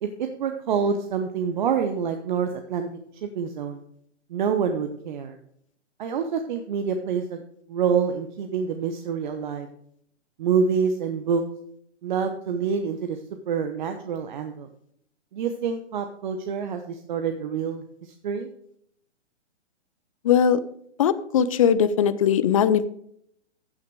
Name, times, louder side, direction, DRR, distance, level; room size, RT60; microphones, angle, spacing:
voice 1, 0.0-2.9 3.2-3.8 4.3-5.4 6.0-7.4 7.7-9.7 10.4-11.4 12.0-13.2 13.5-14.7 15.3-18.5, right 6 dB, 40° right, 6 dB, 0.9 m, -27 dB
voice 2, 20.2-20.6 21.0-22.8, left 8 dB, 30° left, 14 dB, 0.5 m, -20 dB
15.0 x 6.3 x 4.8 m, 0.70 s
hypercardioid pair, 145°, 35 cm